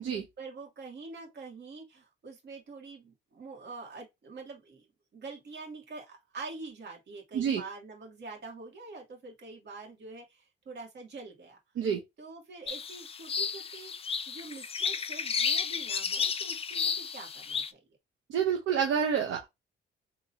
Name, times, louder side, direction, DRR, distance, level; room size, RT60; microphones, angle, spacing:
voice 1, 0.4-4.9 5.1-11.6 12.2-17.8, right 3 dB, 60° right, 2.3 m, -45 dB
sound 1, 12.7-17.7, left 6 dB, 30° left, 0.4 m, -32 dB
voice 2, 18.3-19.4, right 7 dB, 75° right, 0.8 m, -28 dB
3.7 x 3.1 x 2.7 m
cardioid pair, 90°, 20 cm